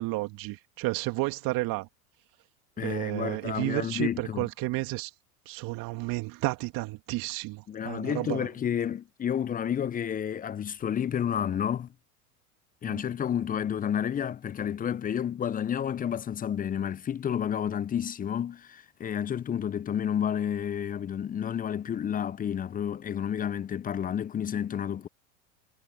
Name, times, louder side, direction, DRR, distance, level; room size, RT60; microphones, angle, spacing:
voice 1, 0.0-1.9 2.8-5.1 5.5-8.5 12.9-13.0, right 21 dB, 50° right, 2.9 m, -32 dB
voice 2, 2.8-4.5 7.7-11.9 12.8-25.1, left 9 dB, 20° left, 0.6 m, -30 dB
hypercardioid pair, 80°, 43 cm